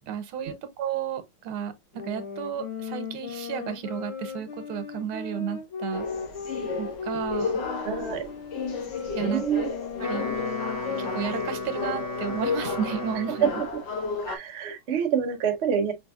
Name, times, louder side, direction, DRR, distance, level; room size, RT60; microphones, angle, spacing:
voice 1, 0.1-1.7 2.0-6.0 6.8-7.6 9.1-9.7 10.0-10.3 11.0-13.6, right 8 dB, 85° right, 1.7 m, -32 dB
sound 1, 1.9-11.9, left 6 dB, 85° left, 1.9 m, -37 dB
sound 2, 5.9-14.4, left 4 dB, 60° left, 1.6 m, -33 dB
voice 2, 7.8-8.3 9.2-9.7 13.4-13.6 14.3-15.9, right 7 dB, 65° right, 0.6 m, -26 dB
Wind instrument woodwind instrument, 9.8-13.7, left 3 dB, 30° left, 1.6 m, -34 dB
5.1 x 3.4 x 2.3 m
omnidirectional pair, 2.3 m